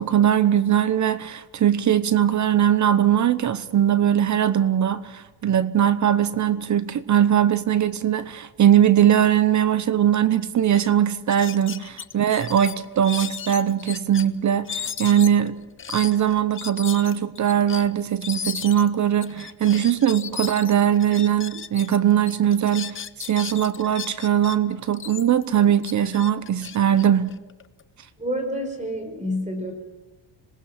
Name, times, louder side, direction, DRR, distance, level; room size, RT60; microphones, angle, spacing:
voice 1, 0.0-15.5 15.9-23.0 23.3-27.4, right 10 dB, 35° right, 0.8 m, -20 dB
sound 1, 10.3-10.4 10.7-10.9 11.3-14.2 14.7-22.0 22.3-24.6 24.9-27.8, left 7 dB, 25° left, 0.8 m, -35 dB
voice 2, 28.2-29.7, equal, 15° right, 4.7 m, -28 dB
27.0 x 19.5 x 5.9 m
cardioid pair, 145°, 48 cm